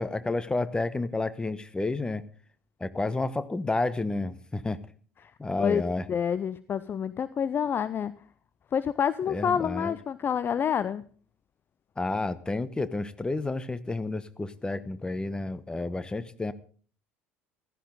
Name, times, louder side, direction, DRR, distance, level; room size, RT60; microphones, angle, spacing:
voice 1, 0.0-2.2 2.8-4.8 5.4-6.0 9.3-10.0 12.0-16.5, left 2 dB, 15° left, 14 dB, 1.0 m, -30 dB
voice 2, 5.6-8.1 8.7-11.0, left 8 dB, 35° left, 15 dB, 0.6 m, -28 dB
16.0 x 14.0 x 3.8 m, 0.43 s
figure-of-eight pair, 65°, 7 cm